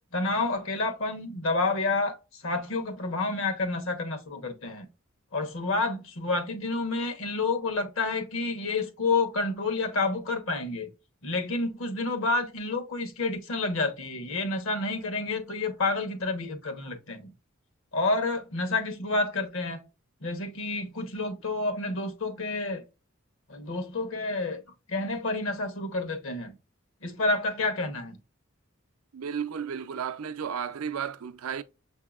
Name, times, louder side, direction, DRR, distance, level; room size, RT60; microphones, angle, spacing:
voice 1, 0.1-4.9 5.3-10.9 11.2-17.3 17.9-19.8 20.2-22.8 23.5-24.6 24.9-26.5 27.0-28.2, left 3 dB, 70° left, 1.0 m, -29 dB
voice 2, 29.1-31.6, right 7 dB, 90° right, 0.4 m, -33 dB
6.9 x 2.7 x 2.3 m
head